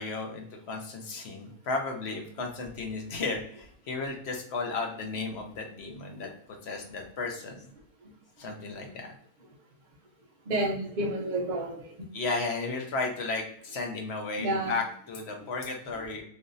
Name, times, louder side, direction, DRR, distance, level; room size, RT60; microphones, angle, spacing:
voice 1, 0.0-6.3 6.6-7.6 8.4-9.1 12.1-16.2, left 3 dB, 60° left, 2 dB, 0.7 m, -34 dB
voice 2, 10.5-12.1 14.4-14.7 16.0-16.1, right 1 dB, 65° right, -2 dB, 0.4 m, -30 dB
3.6 x 2.5 x 2.5 m, 0.62 s
omnidirectional pair, 1.7 m